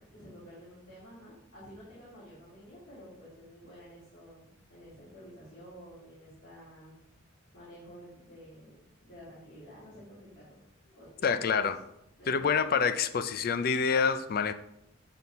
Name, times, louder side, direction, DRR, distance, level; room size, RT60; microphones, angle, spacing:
voice 1, 0.1-7.0 7.5-11.7 12.2-13.0, equal, 75° left, -11 dB, 2.9 m, -51 dB
voice 2, 11.2-11.8 12.3-14.5, left 5 dB, 50° left, 11 dB, 0.4 m, -27 dB
8.4 x 4.2 x 4.0 m, 0.81 s
head